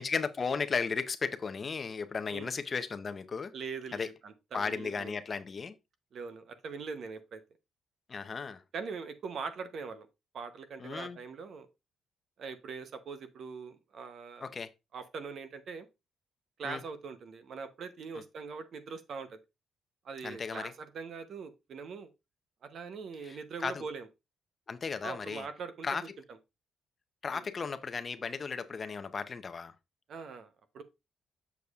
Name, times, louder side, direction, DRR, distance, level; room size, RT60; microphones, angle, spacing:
voice 1, 0.0-3.5 3.9-4.1 4.5-5.8 8.1-8.6 10.8-11.2 14.4-14.7 16.6-16.8 20.2-20.7 23.2-23.8 24.7-25.5 25.8-26.0 27.2-29.7, left 5 dB, 40° left, 0.7 m, -35 dB
voice 2, 3.5-5.1 6.1-7.4 8.7-10.1 10.3-11.7 12.4-14.5 14.9-15.9 16.6-19.4 20.0-22.1 22.6-24.1 25.0-26.1 27.3-27.5 30.1-30.5 30.7-30.8, right 5 dB, 60° right, 0.8 m, -42 dB
7.0 x 6.3 x 2.3 m
cardioid pair, 90°, 0 cm